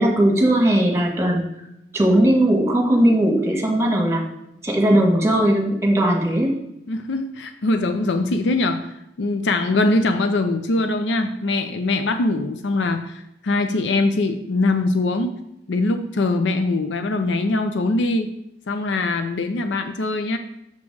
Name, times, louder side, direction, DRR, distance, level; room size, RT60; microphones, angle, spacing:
voice 1, 0.0-1.5 1.9-4.2 4.6-6.5, right 1 dB, 15° right, 1 dB, 1.3 m, -18 dB
voice 2, 6.9-15.4 15.7-18.3 18.7-20.4, left 2 dB, 80° left, 8 dB, 0.5 m, -22 dB
6.7 x 5.2 x 4.7 m, 0.83 s
head